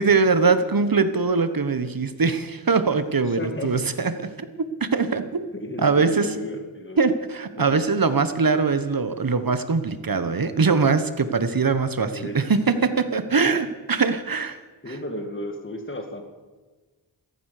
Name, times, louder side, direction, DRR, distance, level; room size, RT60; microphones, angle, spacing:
voice 1, 0.0-4.5 4.8-5.5 5.8-6.3 7.0-14.6 14.9-15.0, right 4 dB, 50° right, 11 dB, 1.3 m, -22 dB
voice 2, 3.4-3.7 5.5-7.0 7.6-7.8 12.1-12.4 13.4-13.6 14.8-16.2, left 1 dB, 30° left, 5 dB, 2.2 m, -33 dB
15.5 x 13.5 x 6.7 m, 1.3 s
wide cardioid pair, 65°, 43 cm